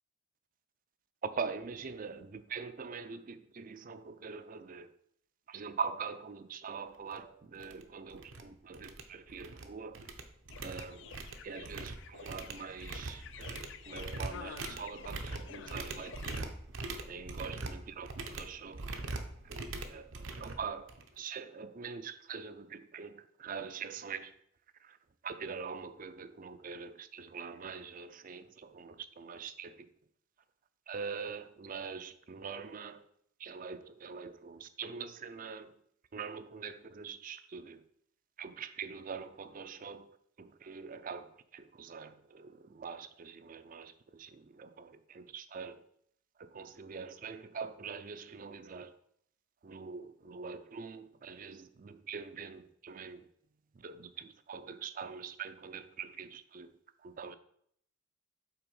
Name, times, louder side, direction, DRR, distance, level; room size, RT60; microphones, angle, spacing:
voice 1, 1.2-4.9 5.5-10.1 10.6-11.1 11.4-16.6 17.1-18.9 19.4-24.3 24.8-25.0 25.2-29.9 30.9-33.1 33.4-35.7 36.1-37.8 38.4-45.8 46.4-49.0 49.6-53.3 53.8-57.4, right 5 dB, 40° right, 0.4 m, -43 dB
sound 1, 7.1-7.2 7.6-7.8 8.1-8.4 8.7-9.7 9.9-21.2, right 3 dB, 70° right, 0.7 m, -42 dB
sound 2, 10.5-16.4, left 7 dB, 60° left, 0.4 m, -50 dB
5.8 x 4.2 x 5.3 m
head